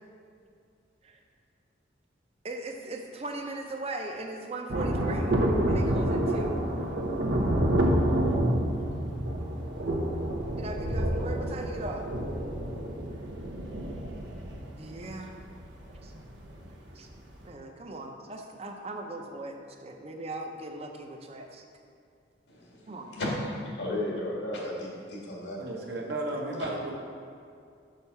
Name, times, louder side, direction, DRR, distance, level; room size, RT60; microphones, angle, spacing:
voice 1, 2.4-5.4 5.7-6.6 8.1-8.4 9.1-9.4 10.6-12.1 13.1-13.3 14.7-15.3 16.0-16.1 16.9-17.1 17.4-21.7 22.9-23.1, right 2 dB, 35° right, 3 dB, 0.7 m, -39 dB
Thunder, 4.7-16.7 16.9-17.0, right 1 dB, 85° right, 0.9 m, -28 dB
voice 2, 22.5-25.7, left 1 dB, 85° left, -3 dB, 1.8 m, -34 dB
voice 3, 25.6-26.9, right 1 dB, 65° right, -1 dB, 1.1 m, -33 dB
6.5 x 5.4 x 5.6 m, 2.4 s
head